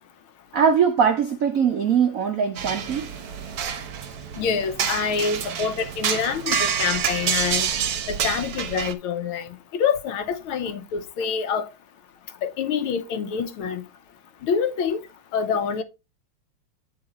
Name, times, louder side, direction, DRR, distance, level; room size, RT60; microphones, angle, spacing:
voice 1, 0.5-3.1, right 7 dB, 90° right, 0.7 m, -21 dB
sound 1, 2.6-8.9, right 8 dB, 60° right, 1.1 m, -28 dB
voice 2, 4.4-7.7 8.1-11.7 12.4-13.8 14.4-15.0 15.3-15.8, left 6 dB, 75° left, 1.6 m, -26 dB
8.8 x 3.8 x 4.2 m
omnidirectional pair, 2.4 m